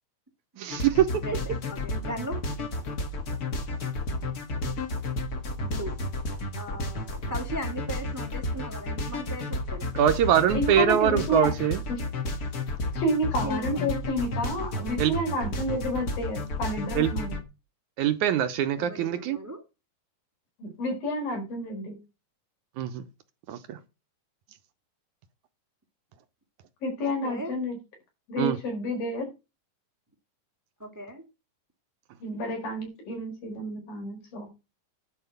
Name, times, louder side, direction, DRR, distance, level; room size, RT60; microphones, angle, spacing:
voice 1, 0.6-1.1 10.0-11.8 15.0-15.2 17.0-17.1 18.0-19.4 22.8-23.0 23.5-23.8 28.4-28.6, right 10 dB, 75° right, 2.0 m, -23 dB
sound 1, 0.7-17.4, left 2 dB, 45° left, 1.3 m, -32 dB
voice 2, 1.7-2.4 5.6-5.9 6.6-9.9 13.4-13.8 18.8-19.6 27.0-27.5 30.8-31.2, right 1 dB, 15° right, 0.5 m, -38 dB
voice 3, 10.5-11.5 13.0-17.4 20.6-22.0 26.8-27.8 28.3-29.3 32.2-34.5, equal, 85° left, 6.4 m, -30 dB
11.0 x 5.3 x 8.0 m
omnidirectional pair, 4.0 m